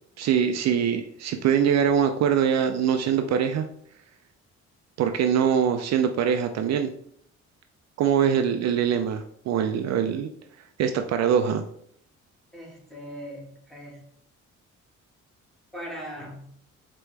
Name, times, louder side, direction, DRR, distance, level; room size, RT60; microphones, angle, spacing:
voice 1, 0.2-3.7 5.0-6.9 8.0-10.3 10.8-11.6, right 8 dB, 60° right, 6 dB, 0.4 m, -23 dB
voice 2, 12.5-14.0 15.7-16.5, equal, ahead, -3 dB, 1.6 m, -39 dB
4.6 x 3.0 x 3.2 m, 0.67 s
cardioid pair, 90°, 30 cm